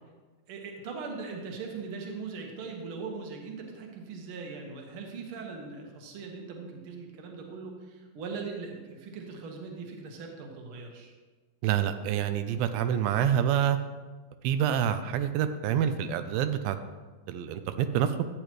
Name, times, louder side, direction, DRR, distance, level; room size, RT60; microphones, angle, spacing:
voice 1, 0.5-11.1, right 4 dB, 55° right, 1 dB, 1.6 m, -40 dB
voice 2, 11.6-13.8 14.4-16.8 17.3-18.1, right 9 dB, 90° right, 9 dB, 2.4 m, -27 dB
13.5 x 8.4 x 3.1 m, 1.3 s
omnidirectional pair, 4.1 m